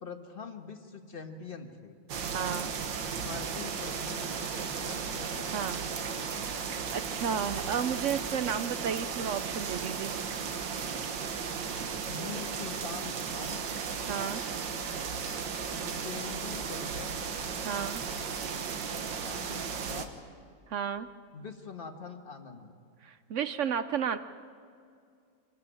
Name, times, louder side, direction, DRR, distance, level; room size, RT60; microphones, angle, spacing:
voice 1, 0.0-2.0 3.1-5.8 7.5-7.7 12.1-13.6 15.7-17.2 19.2-20.1 21.3-22.8, left 5 dB, 35° left, 6 dB, 1.5 m, -44 dB
sound 1, 2.1-20.1, right 6 dB, 85° right, 1.9 m, -35 dB
voice 2, 2.3-2.7 5.5-5.8 6.9-10.1 14.1-14.4 17.6-18.0 20.7-21.1 23.0-24.2, right 8 dB, 70° right, 11 dB, 0.7 m, -32 dB
25.5 x 13.5 x 8.9 m, 2.3 s
omnidirectional pair, 1.9 m